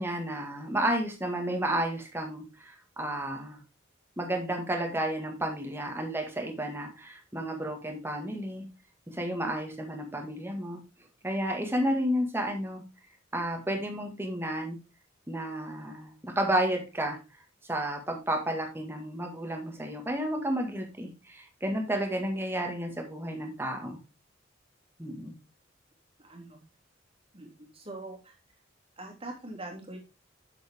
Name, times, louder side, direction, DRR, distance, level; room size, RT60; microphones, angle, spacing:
voice 1, 0.0-3.6 4.2-8.7 9.1-10.8 11.2-12.8 13.3-14.8 15.3-17.2 17.7-24.0 25.0-25.4, right 1 dB, 10° right, 2 dB, 1.9 m, -31 dB
voice 2, 26.2-26.6 27.3-28.3 29.0-30.0, right 2 dB, 30° right, 1 dB, 2.6 m, -43 dB
7.7 x 7.5 x 3.6 m, 0.29 s
head